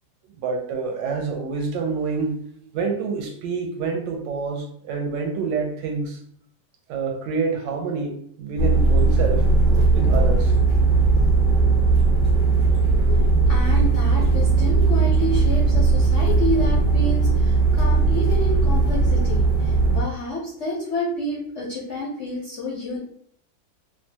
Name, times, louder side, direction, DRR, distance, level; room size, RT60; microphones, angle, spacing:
voice 1, 0.4-2.3 2.7-6.2 6.9-9.5 9.9-10.6, right 4 dB, 75° right, 3 dB, 1.2 m, -27 dB
sound 1, 8.6-20.0, right 3 dB, 30° right, 0.8 m, -18 dB
voice 2, 13.0-23.0, left 1 dB, 65° left, -5 dB, 0.7 m, -29 dB
3.1 x 2.2 x 2.7 m, 0.64 s
omnidirectional pair, 2.1 m